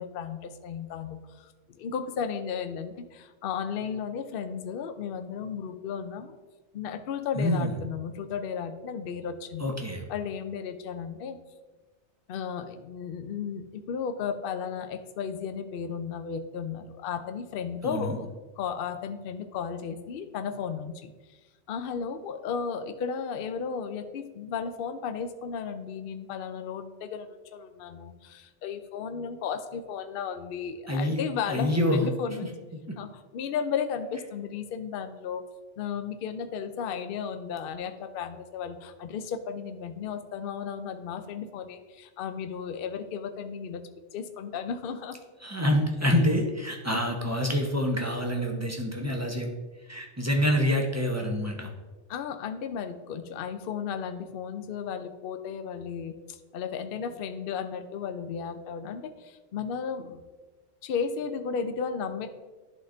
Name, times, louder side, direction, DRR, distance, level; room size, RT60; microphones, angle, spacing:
voice 1, 0.0-6.4 6.7-9.7 10.1-11.4 12.3-21.1 21.7-32.5 33.0-35.4 35.8-43.8 44.1-45.2 46.0-46.1 46.9-47.0 52.1-60.2 60.8-62.3, left 6 dB, 60° left, 8 dB, 0.7 m, -34 dB
voice 2, 7.3-7.8 9.6-10.0 17.8-18.2 30.9-31.2 31.5-32.0 45.4-49.5 49.9-51.7, left 1 dB, 15° right, 1 dB, 0.8 m, -26 dB
11.0 x 3.8 x 3.8 m, 1.2 s
omnidirectional pair, 1.2 m